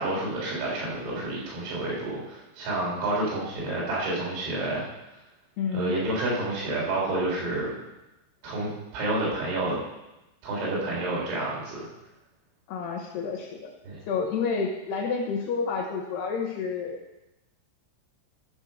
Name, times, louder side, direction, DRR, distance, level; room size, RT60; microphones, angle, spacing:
voice 1, 0.0-4.9 5.7-7.7 8.4-9.8 10.4-11.9 13.9-14.0, right 2 dB, 90° right, -5 dB, 5.8 m, -29 dB
voice 2, 5.6-5.9 12.7-13.8 14.1-17.0, left 5 dB, 75° left, 0 dB, 2.6 m, -29 dB
13.0 x 5.3 x 6.2 m, 0.97 s
omnidirectional pair, 5.7 m